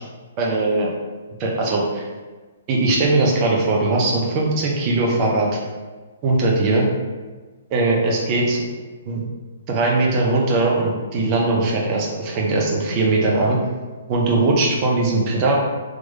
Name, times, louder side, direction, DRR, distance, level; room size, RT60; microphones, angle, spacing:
voice 1, 0.4-0.9 1.4-2.0 2.7-5.5 6.2-6.9 7.7-8.7 9.1-9.2 9.7-13.6 14.1-15.6, right 2 dB, 30° right, -2 dB, 0.7 m, -20 dB
3.7 x 3.0 x 2.6 m, 1.3 s
figure-of-eight pair, 120°, 0 cm